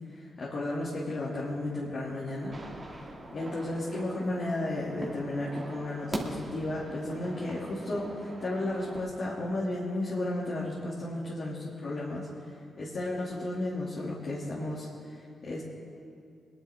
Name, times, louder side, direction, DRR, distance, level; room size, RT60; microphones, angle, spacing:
voice 1, 0.1-2.5 3.3-12.3 12.8-15.6, left 1 dB, 60° left, -6 dB, 2.7 m, -33 dB
sound 1, 2.4-9.1, right 2 dB, 35° right, 2.5 m, -41 dB
21.0 x 11.0 x 3.7 m, 2.4 s
supercardioid pair, 45°, 0 cm